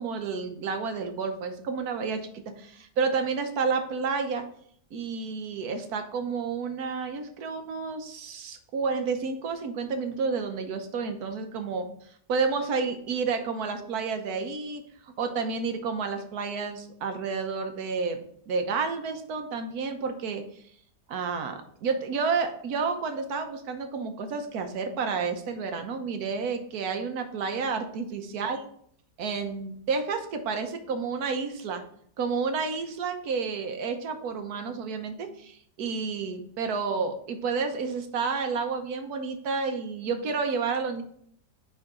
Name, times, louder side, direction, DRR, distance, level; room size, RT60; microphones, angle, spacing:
voice 1, 0.0-2.2 2.6-4.4 4.9-11.9 12.3-20.6 21.1-28.6 29.2-31.8 32.2-41.0, right 5 dB, 65° right, 7 dB, 1.4 m, -30 dB
9.8 x 3.9 x 3.8 m, 0.65 s
omnidirectional pair, 1.8 m